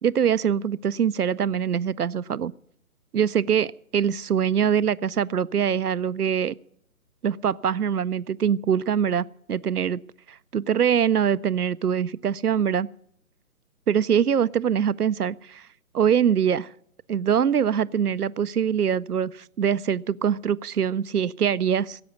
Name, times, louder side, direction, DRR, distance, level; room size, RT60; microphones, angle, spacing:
voice 1, 0.0-2.5 3.1-6.5 7.2-10.0 10.3-12.9 13.9-15.7 15.9-16.7 17.1-22.0, right 8 dB, 90° right, 19 dB, 0.6 m, -23 dB
16.5 x 8.3 x 9.4 m, 0.70 s
figure-of-eight pair, 140°, 44 cm